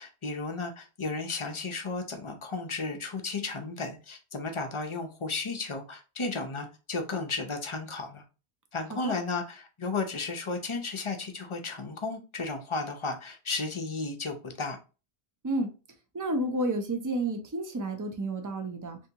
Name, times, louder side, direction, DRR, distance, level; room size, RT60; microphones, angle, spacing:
voice 1, 0.0-8.2 8.7-14.8, left 3 dB, 35° left, 0.6 m, -34 dB
voice 2, 16.1-19.0, right 1 dB, 25° right, 0.4 m, -30 dB
3.5 x 2.7 x 2.7 m
omnidirectional pair, 1.1 m